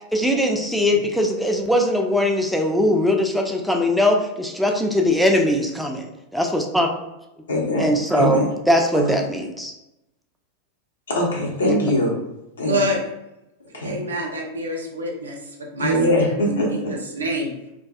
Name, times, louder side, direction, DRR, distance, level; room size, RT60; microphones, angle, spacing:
voice 1, 0.1-6.9 7.8-9.7 11.6-11.9, left 1 dB, ahead, 2 dB, 0.4 m, -21 dB
voice 2, 7.5-8.5 8.9-9.2 11.1-12.1 12.6-12.9 13.7-14.0 15.8-16.9, left 1 dB, 70° left, -2 dB, 0.7 m, -22 dB
voice 3, 12.6-13.0 13.8-16.0 16.4-17.5, equal, 70° right, 1 dB, 0.4 m, -27 dB
2.5 x 2.2 x 2.2 m, 0.92 s
figure-of-eight pair, 90°, 0 cm